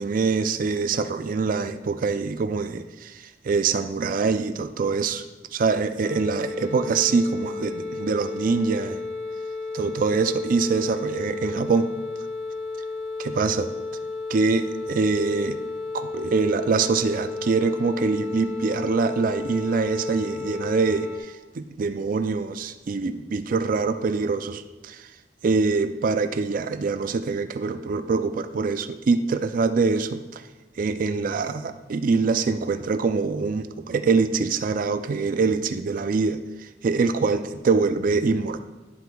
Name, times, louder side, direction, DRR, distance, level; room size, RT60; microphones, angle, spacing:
voice 1, 0.0-5.2 5.5-9.0 9.7-11.9 13.2-13.7 14.3-15.6 15.9-25.1 25.4-30.4 30.8-38.6, right 4 dB, 45° right, 10 dB, 0.3 m, -24 dB
sound 1, 6.0-21.2, left 3 dB, 5° left, 1.9 m, -33 dB
11.0 x 8.0 x 2.3 m, 1.2 s
head